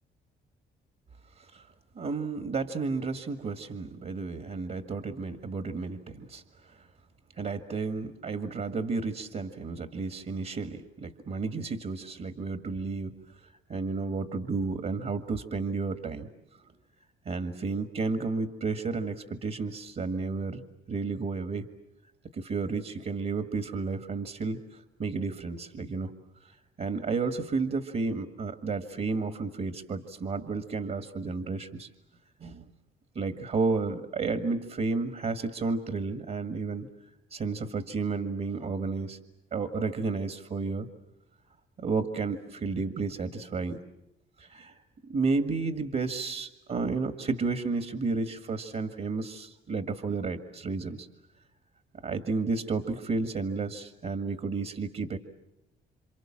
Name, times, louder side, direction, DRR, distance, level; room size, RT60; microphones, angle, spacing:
voice 1, 2.0-6.8 7.4-13.1 13.7-16.3 17.3-20.6 20.9-21.7 22.3-24.6 25.0-26.1 26.8-31.9 32.4-32.6 33.2-36.9 37.3-39.2 39.5-40.9 41.8-43.8 44.4-44.8 45.0-51.1 52.0-55.2, right 4 dB, 50° right, 9 dB, 1.9 m, -32 dB
29.0 x 26.5 x 7.5 m, 0.85 s
cardioid pair, 90°, 20 cm